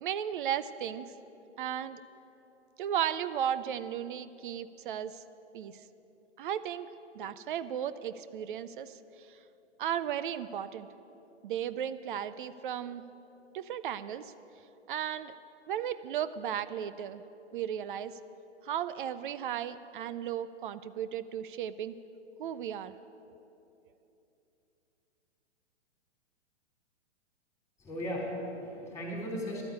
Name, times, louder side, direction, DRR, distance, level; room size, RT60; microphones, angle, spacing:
voice 1, 0.0-1.1 1.6-2.0 2.8-5.2 5.5-5.8 6.4-9.4 9.8-10.9 11.4-13.0 13.5-14.3 14.9-15.3 15.7-17.2 17.5-18.2 18.6-21.9 22.4-23.0, right 9 dB, 50° right, 14 dB, 0.5 m, -35 dB
voice 2, 27.8-29.6, equal, 10° left, -1 dB, 3.5 m, -36 dB
12.5 x 9.2 x 8.4 m, 2.9 s
hypercardioid pair, 120°, 34 cm